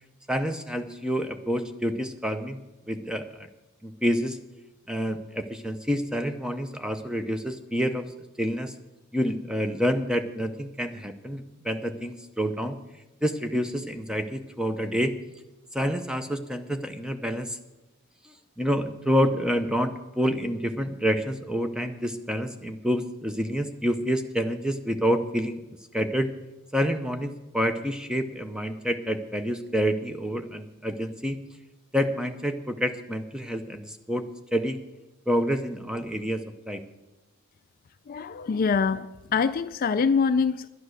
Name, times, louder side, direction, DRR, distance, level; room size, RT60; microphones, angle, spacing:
voice 1, 0.3-2.6 2.9-3.5 3.8-4.4 4.9-8.7 9.1-12.8 13.2-15.1 15.7-17.6 18.2-26.3 26.7-31.4 31.9-34.8 35.3-36.8, equal, 5° right, 7 dB, 0.6 m, -28 dB
voice 2, 38.1-40.7, left 5 dB, 40° left, 12 dB, 0.3 m, -24 dB
11.0 x 10.5 x 6.4 m, 1.0 s
head